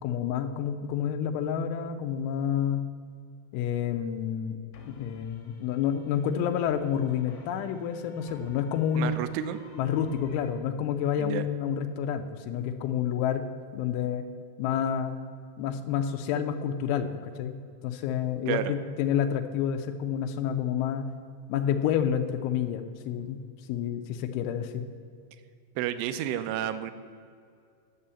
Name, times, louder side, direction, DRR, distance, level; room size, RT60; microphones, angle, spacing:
voice 1, 0.0-2.8 3.5-4.6 4.9-9.2 9.8-13.5 13.7-14.2 14.6-15.2 15.6-17.6 17.8-21.1 21.5-23.4 23.7-24.9, left 8 dB, 85° left, 6 dB, 3.1 m, -29 dB
sound 1, 4.7-10.5, left 4 dB, 65° left, 2.7 m, -52 dB
voice 2, 9.0-9.6 11.2-11.5 18.5-18.7 25.8-26.9, right 11 dB, 80° right, 11 dB, 2.5 m, -31 dB
10.5 x 6.9 x 8.7 m, 2.3 s
omnidirectional pair, 5.4 m